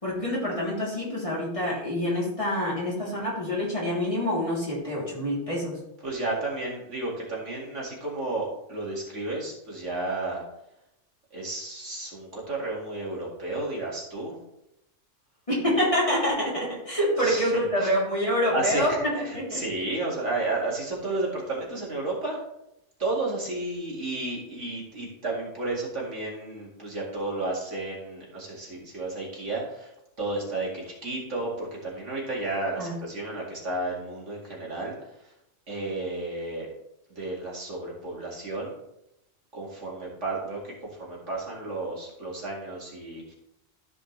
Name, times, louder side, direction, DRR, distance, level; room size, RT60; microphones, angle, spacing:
voice 1, 0.0-5.8 15.5-19.6 32.8-32.9, equal, 25° left, -6 dB, 3.2 m, -26 dB
voice 2, 6.0-10.4 11.3-14.3 17.2-17.5 17.8-17.9 18.5-22.4 23.0-29.9 30.2-35.0 35.2-35.3 35.7-36.7 37.1-38.7 39.5-43.3, right 2 dB, 65° right, -3 dB, 2.5 m, -32 dB
14.0 x 5.1 x 3.3 m, 0.84 s
omnidirectional pair, 1.3 m